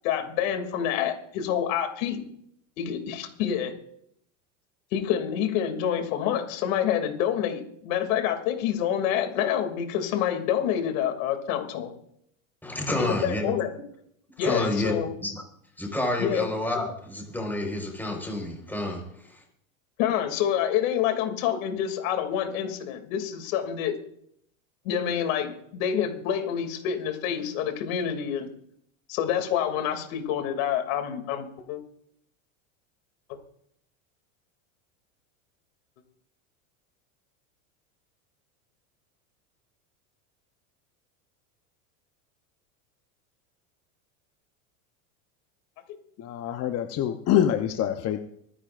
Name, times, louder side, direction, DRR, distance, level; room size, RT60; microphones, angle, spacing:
voice 1, 0.0-2.2 2.8-3.7 4.9-11.9 12.9-13.8 14.4-15.1 16.2-16.5 20.0-23.9 24.8-28.5 29.1-31.8, left 9 dB, 65° left, 5 dB, 2.8 m, -27 dB
voice 2, 12.6-13.5 14.4-14.9 15.2-15.4 15.8-19.0, left 1 dB, 5° left, 1 dB, 4.5 m, -29 dB
voice 3, 46.2-48.2, left 10 dB, 35° left, 7 dB, 0.9 m, -25 dB
25.0 x 10.5 x 2.5 m, 0.70 s
supercardioid pair, 115°, 42 cm